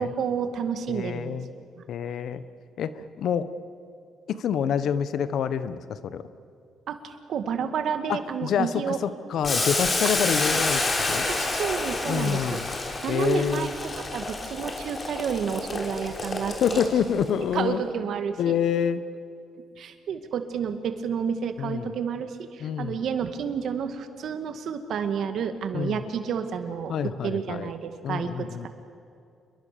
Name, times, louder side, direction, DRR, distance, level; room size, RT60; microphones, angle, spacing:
voice 1, 0.0-1.4 1.8-1.9 6.9-9.0 11.3-12.6 13.0-16.8 17.5-18.6 19.8-28.7, right 7 dB, 70° right, 8 dB, 2.0 m, -30 dB
voice 2, 0.9-1.5 1.9-2.4 2.8-2.9 3.2-3.5 4.3-6.3 8.1-10.8 11.1-11.3 12.1-12.7 13.1-13.7 16.6-17.8 18.4-19.0 21.6-21.9 22.6-23.0 25.7-26.0 26.9-27.7 28.0-28.7, left 8 dB, 70° left, 13 dB, 1.1 m, -27 dB
Boiling, 9.4-17.2, left 2 dB, 35° left, 3.9 m, -29 dB
28.0 x 22.5 x 6.9 m, 2.5 s
cardioid pair, 90°, 0 cm